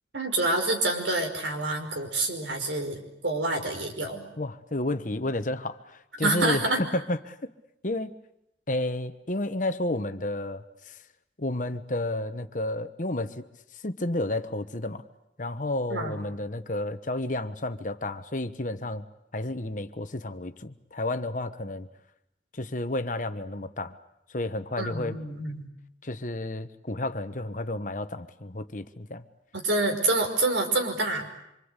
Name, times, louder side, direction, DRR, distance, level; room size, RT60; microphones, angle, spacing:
voice 1, 0.1-4.3 6.2-6.8 15.9-16.2 24.8-25.7 29.5-31.4, right 2 dB, 85° right, 3 dB, 5.4 m, -27 dB
voice 2, 4.4-7.5 7.8-8.1 8.7-11.0 11.4-15.0 15.4-19.0 19.3-21.9 22.5-23.9 24.3-25.2 26.0-29.2, left 2 dB, 45° left, 10 dB, 1.2 m, -31 dB
26.0 x 25.5 x 8.3 m, 0.83 s
head